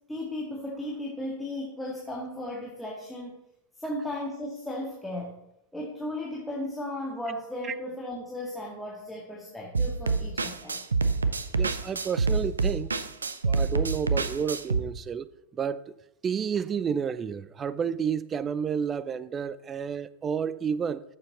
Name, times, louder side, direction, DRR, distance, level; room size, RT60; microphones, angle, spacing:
voice 1, 0.1-3.4 3.8-5.4 5.7-10.8, left 1 dB, 5° left, 1.9 m, -35 dB
sound 1, 9.7-14.8, right 4 dB, 75° right, 0.7 m, -27 dB
voice 2, 11.5-12.9 13.4-15.9 16.2-21.0, right 7 dB, 20° right, 0.5 m, -30 dB
14.5 x 7.0 x 4.0 m
figure-of-eight pair, 90°, 0 cm